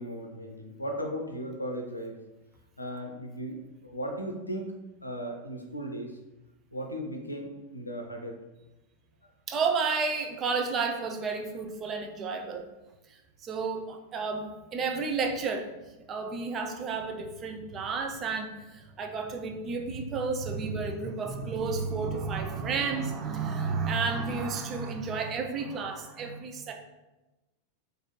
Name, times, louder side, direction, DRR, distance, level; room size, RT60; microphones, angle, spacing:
voice 1, 0.0-2.2 2.8-4.7 5.0-6.2 6.7-8.4 9.2-9.3, equal, 85° left, 2 dB, 0.5 m, -36 dB
voice 2, 9.5-12.7 13.1-15.7 16.1-26.7, right 4 dB, 25° right, 3 dB, 0.5 m, -31 dB
3.9 x 2.6 x 3.1 m, 1.1 s
figure-of-eight pair, 90°, 0 cm